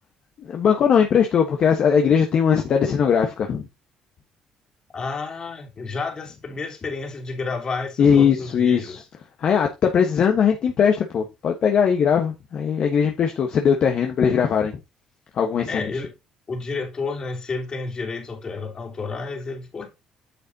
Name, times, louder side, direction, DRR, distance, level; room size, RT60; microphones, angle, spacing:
voice 1, 0.4-3.6 8.0-9.0 9.4-14.7 15.3-15.9, left 7 dB, 55° left, 1.3 m, -20 dB
voice 2, 4.9-9.0 15.7-16.1 16.5-19.9, left 4 dB, 35° left, 3.0 m, -30 dB
9.3 x 6.7 x 2.8 m
cardioid pair, 95°, 2 cm